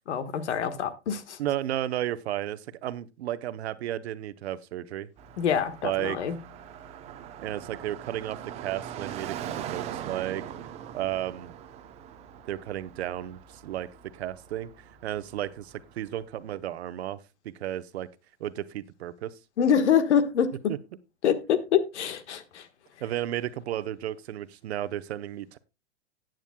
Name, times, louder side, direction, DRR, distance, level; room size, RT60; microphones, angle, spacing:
voice 1, 0.1-1.4 5.4-6.4 19.6-20.5 21.2-22.7, left 8 dB, 70° left, 1.4 m, -25 dB
voice 2, 1.4-5.1 5.8-6.2 7.4-10.4 10.9-11.6 12.5-14.7 15.0-18.1 18.4-19.3 20.7-20.8 23.0-25.6, right 12 dB, 65° right, 0.8 m, -33 dB
Car passing by, 5.2-16.3, right 9 dB, 20° right, 0.6 m, -42 dB
14.0 x 9.0 x 2.2 m
hypercardioid pair, 145°, 36 cm